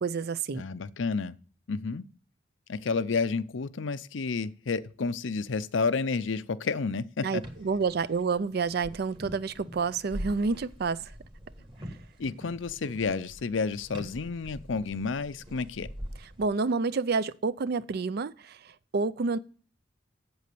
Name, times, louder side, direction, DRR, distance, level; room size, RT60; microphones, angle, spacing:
voice 1, 0.0-0.6 7.2-11.1 16.4-19.4, right 4 dB, 55° right, 0.4 m, -29 dB
voice 2, 0.5-1.3 1.7-2.0 2.7-7.4 12.2-15.9, left 4 dB, 90° left, 0.6 m, -30 dB
sound 1, 7.4-16.5, equal, 30° right, 1.6 m, -44 dB
8.0 x 7.7 x 6.8 m
head